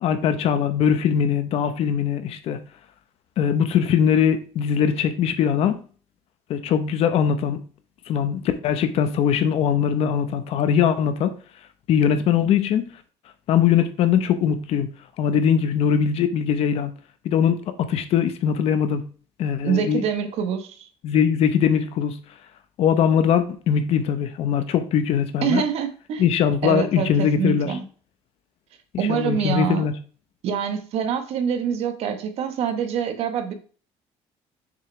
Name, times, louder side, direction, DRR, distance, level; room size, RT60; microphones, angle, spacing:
voice 1, 0.0-2.6 3.4-5.8 6.5-7.6 8.1-11.3 11.9-12.9 13.5-14.9 15.2-16.9 17.2-19.0 19.4-20.0 21.0-22.2 22.8-25.6 26.2-27.8 29.1-29.9, left 8 dB, 65° left, 9 dB, 1.0 m, -21 dB
voice 2, 19.6-20.9 25.4-26.2 26.6-27.8 29.0-29.9 30.4-33.5, right 7 dB, 65° right, 7 dB, 1.3 m, -25 dB
7.0 x 6.6 x 3.4 m, 0.40 s
cardioid pair, 145°, 11 cm